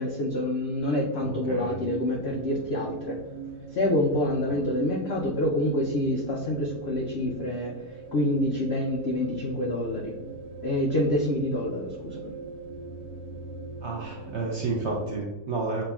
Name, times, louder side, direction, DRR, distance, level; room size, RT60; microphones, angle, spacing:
voice 1, 0.0-3.2 3.7-10.1 10.6-12.3, left 1 dB, 90° left, -2 dB, 0.5 m, -27 dB
voice 2, 1.2-1.7 13.8-15.8, right 3 dB, 60° right, -2 dB, 0.7 m, -31 dB
sound 1, 1.5-15.2, right 4 dB, 80° right, 1.6 m, -41 dB
7.3 x 2.7 x 2.3 m, 1.1 s
omnidirectional pair, 1.9 m